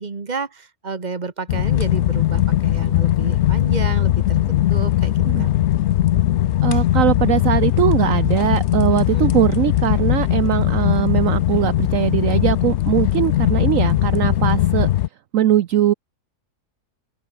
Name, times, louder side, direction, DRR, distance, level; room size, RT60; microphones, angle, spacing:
voice 1, 0.0-4.4 4.7-5.5 9.1-9.4, right 4 dB, 30° right, 1.6 m, -31 dB
sound 1, 1.5-15.1, left 13 dB, 70° left, 0.7 m, -19 dB
voice 2, 6.6-14.9 15.3-15.9, right 12 dB, 65° right, 1.0 m, -20 dB
open air
omnidirectional pair, 1.6 m